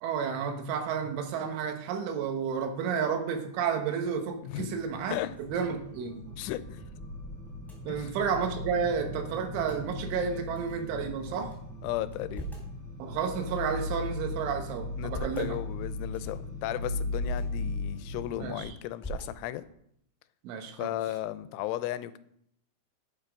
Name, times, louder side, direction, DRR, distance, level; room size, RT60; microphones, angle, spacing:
voice 1, 0.0-6.4 7.9-11.5 13.0-15.6 18.4-18.8 20.4-20.9, right 6 dB, 85° right, 6 dB, 3.7 m, -31 dB
voice 2, 4.4-4.8 5.1-5.4 6.4-6.8 7.9-8.2 11.8-12.5 15.0-19.7 20.8-22.2, left 14 dB, 90° left, 14 dB, 3.1 m, -35 dB
sound 1, 4.7-18.6, left 2 dB, 30° right, 5.9 m, -38 dB
sound 2, 5.2-8.6 8.9-9.0 9.2-9.8 10.5-11.6 12.0-12.8 13.3-14.3 14.8-15.5 16.0-16.5 17.0-17.4 17.9-18.5 19.0-19.7, right 2 dB, ahead, 2.9 m, -45 dB
11.0 x 8.3 x 5.2 m, 0.71 s
omnidirectional pair, 5.4 m